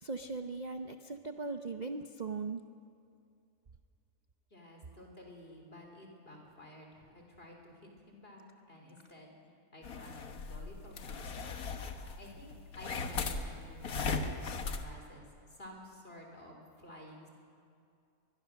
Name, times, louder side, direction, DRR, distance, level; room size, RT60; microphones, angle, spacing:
voice 1, 0.0-2.6, right 4 dB, 40° right, 7 dB, 0.7 m, -39 dB
voice 2, 4.5-9.3 9.7-11.6 12.2-15.2 15.6-17.3, left 1 dB, 40° left, 1 dB, 3.9 m, -52 dB
sound 1, 9.8-14.9, left 4 dB, 85° left, 1.7 m, -38 dB
23.0 x 21.5 x 6.5 m, 2.5 s
omnidirectional pair, 1.5 m